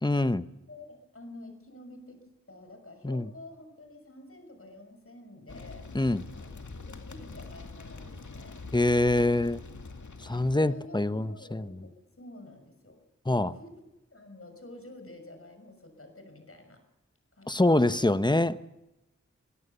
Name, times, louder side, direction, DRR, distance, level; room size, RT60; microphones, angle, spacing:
voice 1, 0.0-0.5 3.0-3.3 5.9-6.2 8.7-9.6 10.2-11.7 13.3-13.5 17.5-18.7, left 2 dB, 15° left, 13 dB, 1.0 m, -25 dB
voice 2, 0.7-2.2 2.5-5.9 6.3-6.5 6.9-8.6 10.3-11.9 12.2-13.0 13.3-13.8 14.1-16.8 17.3-18.1, left 2 dB, 50° left, 6 dB, 6.2 m, -49 dB
sound 1, 5.5-10.7, left 3 dB, 80° left, 2.3 m, -44 dB
27.5 x 17.0 x 6.9 m, 0.94 s
wide cardioid pair, 55°, 29 cm